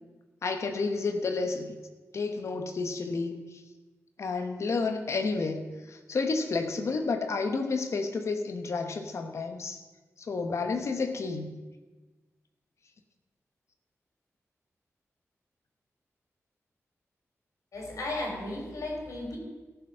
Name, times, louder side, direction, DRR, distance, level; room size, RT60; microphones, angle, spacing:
voice 1, 0.4-1.7 2.1-3.4 4.2-9.8 10.3-11.5, left 4 dB, 65° left, 6 dB, 1.2 m, -30 dB
voice 2, 17.7-19.4, left 2 dB, 85° left, 0 dB, 3.5 m, -35 dB
15.0 x 7.0 x 5.6 m, 1.2 s
wide cardioid pair, 175°, 5 cm